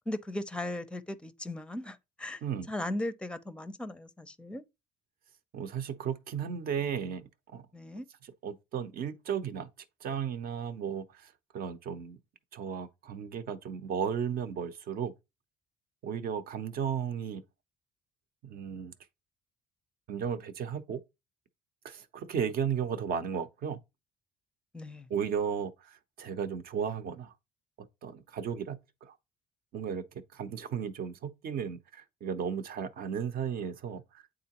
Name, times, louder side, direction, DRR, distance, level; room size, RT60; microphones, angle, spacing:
voice 1, 0.1-4.6 7.7-8.1 24.7-25.1, left 1 dB, 5° left, 0.5 m, -37 dB
voice 2, 5.5-7.7 8.4-9.7 10.0-12.2 12.5-15.1 16.0-17.4 18.4-18.9 20.1-21.0 21.8-23.8 25.1-27.3 27.8-29.2 29.7-34.2, right 7 dB, 60° right, 0.8 m, -35 dB
8.6 x 3.8 x 2.9 m
cardioid pair, 110°, 17 cm